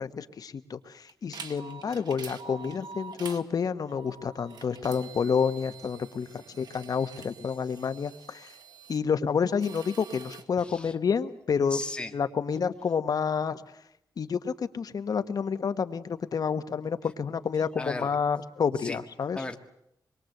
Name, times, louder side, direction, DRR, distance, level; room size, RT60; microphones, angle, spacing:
voice 1, 0.0-8.5 8.9-11.8 12.1-13.6 14.2-19.4, left 6 dB, 60° left, 11 dB, 1.3 m, -29 dB
sound 1, 1.1-3.4 3.9-9.0 9.5-10.5, right 6 dB, 75° right, 1.9 m, -46 dB
voice 2, 10.6-10.9 11.7-12.2 17.8-18.2 18.8-19.0 19.3-19.6, left 2 dB, 15° left, 5 dB, 1.9 m, -36 dB
25.5 x 22.5 x 7.9 m, 0.75 s
wide cardioid pair, 120°, 7 cm